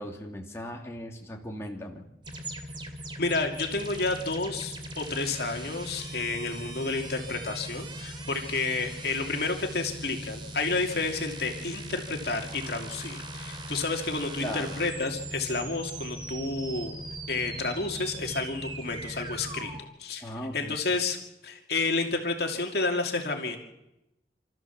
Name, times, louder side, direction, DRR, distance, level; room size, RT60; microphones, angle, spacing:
voice 1, 0.0-2.0 14.4-14.7 20.2-20.8, equal, 15° left, 0 dB, 2.8 m, -37 dB
sound 1, 2.2-19.8, right 1 dB, 25° right, 2.6 m, -39 dB
voice 2, 3.2-17.0 17.3-19.7 20.0-21.2 21.4-23.6, left 3 dB, 60° left, 3 dB, 2.6 m, -30 dB
28.5 x 14.0 x 7.3 m, 0.89 s
head